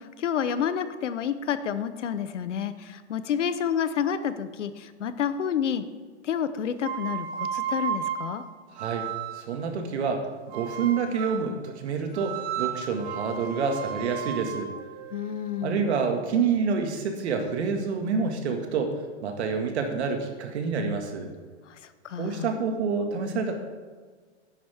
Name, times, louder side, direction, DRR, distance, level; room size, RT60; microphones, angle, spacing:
voice 1, 0.0-5.8 6.2-8.4 15.1-15.8 22.0-22.5, left 8 dB, 90° left, 12 dB, 1.0 m, -29 dB
sound 1, 6.8-9.6 10.5-11.5 12.1-16.1, right 8 dB, 35° right, 1.0 m, -34 dB
voice 2, 8.7-9.1 9.3-10.2 10.5-14.7 15.6-19.0 19.2-21.3 22.2-23.5, right 5 dB, 65° right, 4 dB, 2.0 m, -28 dB
12.0 x 10.5 x 3.6 m, 1.5 s
hypercardioid pair, 150°, 35 cm